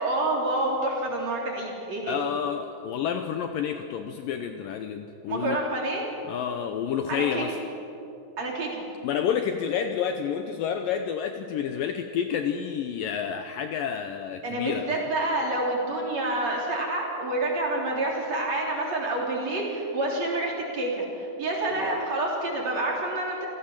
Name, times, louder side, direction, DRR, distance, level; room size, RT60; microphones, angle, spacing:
voice 1, 0.0-2.2 5.3-6.0 7.1-7.4 8.4-8.8 14.4-23.5, right 2 dB, 40° right, -2 dB, 4.6 m, -28 dB
voice 2, 2.0-5.6 6.3-7.6 9.0-15.0 21.8-21.9, left 8 dB, 75° left, 7 dB, 2.2 m, -29 dB
27.5 x 16.5 x 7.4 m, 2.9 s
omnidirectional pair, 4.7 m